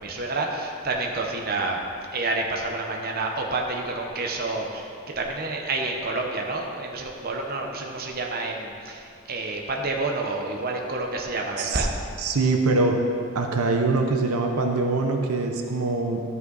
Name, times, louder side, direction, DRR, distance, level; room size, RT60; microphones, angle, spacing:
voice 1, 0.0-1.8 2.1-4.9 5.2-11.9, right 2 dB, 45° right, 1 dB, 0.9 m, -29 dB
voice 2, 12.2-13.0 13.3-16.2, right 3 dB, 85° right, 3 dB, 0.7 m, -23 dB
12.5 x 5.5 x 4.0 m, 2.3 s
head